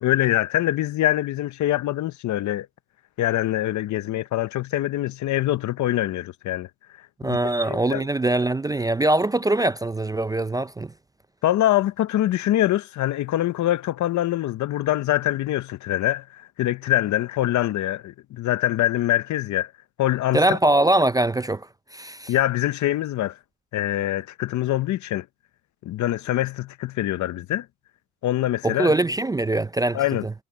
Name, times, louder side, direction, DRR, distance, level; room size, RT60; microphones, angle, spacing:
voice 1, 0.0-2.7 3.2-6.7 7.2-7.4 7.7-8.0 11.4-19.7 20.0-20.6 22.3-23.4 23.7-25.3 25.8-27.7 28.2-28.9 29.9-30.2, left 14 dB, 70° left, 0.8 m, -24 dB
voice 2, 7.2-10.9 20.3-22.3 28.6-30.3, right 2 dB, 15° right, 0.4 m, -22 dB
cardioid pair, 90°, 30 cm